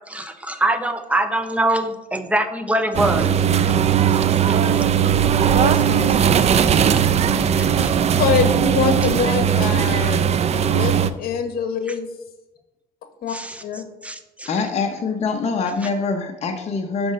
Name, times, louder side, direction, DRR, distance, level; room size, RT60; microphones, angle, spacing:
voice 1, 0.1-3.3 4.5-4.6 7.6-8.2 13.3-13.6 14.0-14.5, right 1 dB, 10° right, 8 dB, 0.8 m, -23 dB
sound 1, 2.9-11.1, right 8 dB, 40° right, 0.5 m, -18 dB
voice 2, 5.2-6.2 8.1-10.2 10.5-12.1 13.2-13.4 13.6-13.8, left 6 dB, 65° left, 8 dB, 1.3 m, -24 dB
voice 3, 14.5-17.1, left 4 dB, 40° left, 3 dB, 0.8 m, -24 dB
6.1 x 5.2 x 6.3 m, 1.0 s
cardioid pair, 110°, 17 cm